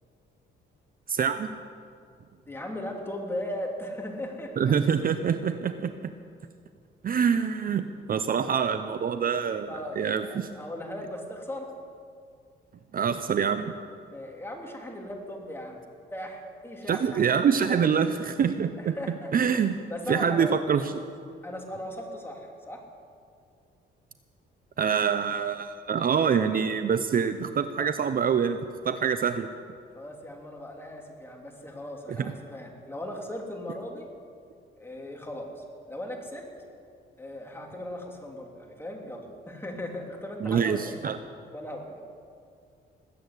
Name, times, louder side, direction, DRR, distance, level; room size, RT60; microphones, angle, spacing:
voice 1, 1.1-1.5 4.6-6.1 7.0-9.7 10.0-10.5 12.9-13.7 16.9-19.8 20.1-20.8 24.8-29.5 32.2-32.3 40.4-41.2, right 7 dB, 45° right, 10 dB, 0.7 m, -25 dB
voice 2, 2.5-4.7 9.7-11.7 14.1-15.8 16.1-17.3 17.7-17.9 18.8-19.3 19.9-20.5 21.4-22.8 29.9-34.1 34.8-36.5 37.2-40.9 41.5-42.0, left 1 dB, 10° left, 0 dB, 3.2 m, -38 dB
20.0 x 8.7 x 8.1 m, 2.2 s
cardioid pair, 90°, 20 cm